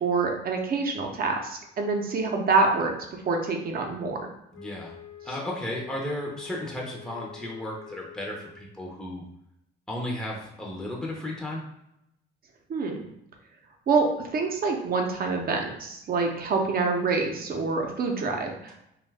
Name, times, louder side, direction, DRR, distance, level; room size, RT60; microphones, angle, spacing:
voice 1, 0.0-4.3 12.7-13.0 13.9-18.7, right 4 dB, 50° right, 2 dB, 0.6 m, -26 dB
Wind instrument woodwind instrument, 4.5-8.7, left 8 dB, 75° left, 0.9 m, -46 dB
voice 2, 4.5-4.9 5.2-9.2 9.9-11.6, left 1 dB, 5° left, -2 dB, 0.5 m, -34 dB
2.6 x 2.2 x 3.3 m, 0.80 s
cardioid pair, 90°, 20 cm